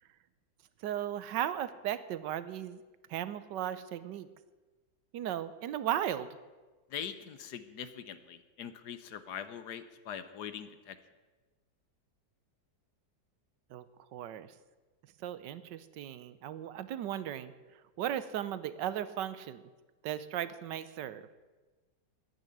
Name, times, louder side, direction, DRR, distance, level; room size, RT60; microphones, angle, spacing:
voice 1, 0.8-2.8 3.1-4.3 5.1-6.4 13.7-13.8 14.1-14.5 15.2-17.5 18.0-19.6 20.0-21.3, right 11 dB, 85° right, 14 dB, 1.4 m, -36 dB
voice 2, 6.9-11.0, left 8 dB, 70° left, 11 dB, 1.4 m, -42 dB
10.0 x 9.3 x 9.9 m, 1.3 s
omnidirectional pair, 1.9 m